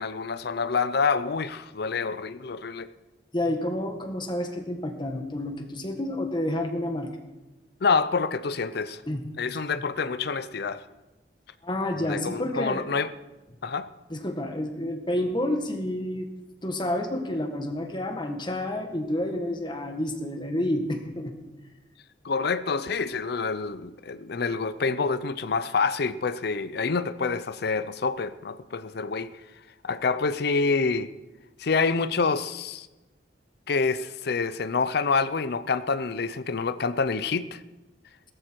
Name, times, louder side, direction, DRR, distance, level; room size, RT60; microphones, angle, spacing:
voice 1, 0.0-2.9 7.8-9.0 9.4-10.8 12.0-13.1 13.6-13.9 22.2-29.3 29.8-31.1 31.6-32.9 33.7-37.6, left 4 dB, 65° left, 0.6 m, -27 dB
voice 2, 3.3-7.1 9.1-9.3 9.8-9.9 11.6-12.9 14.1-16.3 16.6-21.3, left 1 dB, 25° left, 1.7 m, -29 dB
17.5 x 14.5 x 4.6 m
head